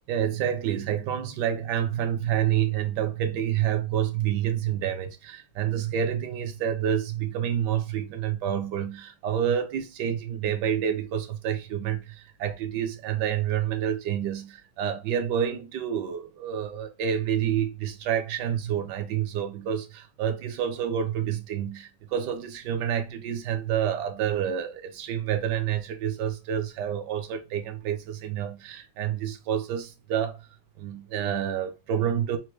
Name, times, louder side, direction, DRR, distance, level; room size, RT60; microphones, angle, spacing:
voice 1, 0.1-30.5 30.8-32.4, right 9 dB, 70° right, 1.1 m, -28 dB
4.4 x 2.2 x 3.0 m
omnidirectional pair, 2.3 m